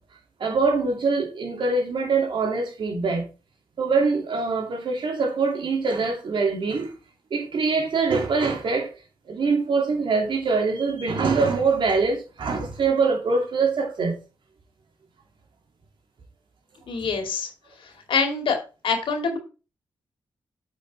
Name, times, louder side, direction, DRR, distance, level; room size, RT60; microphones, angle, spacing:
voice 1, 0.4-3.3 3.8-6.9 7.3-8.9 9.3-14.2, right 4 dB, 65° right, 2.6 m, -23 dB
voice 2, 16.9-17.5 17.8-18.6 18.8-19.4, left 5 dB, 70° left, 2.3 m, -25 dB
8.3 x 5.4 x 4.1 m
cardioid pair, 70°, 9 cm